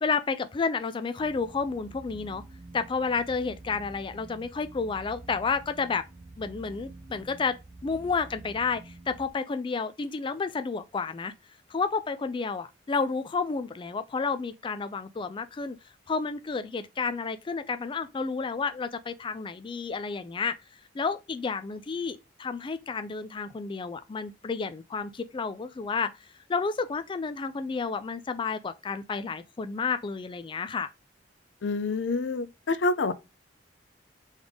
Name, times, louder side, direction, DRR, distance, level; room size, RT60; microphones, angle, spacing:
voice 1, 0.0-2.4 2.7-6.0 6.4-7.6 7.8-11.3 11.7-15.8 16.1-20.6 20.9-26.1 26.5-30.9, left 4 dB, 30° left, 0.4 m, -31 dB
sound 1, 1.2-9.3, right 2 dB, 45° right, 0.8 m, -48 dB
voice 2, 31.6-33.1, left 3 dB, 85° left, 0.5 m, -27 dB
4.0 x 3.4 x 3.5 m
head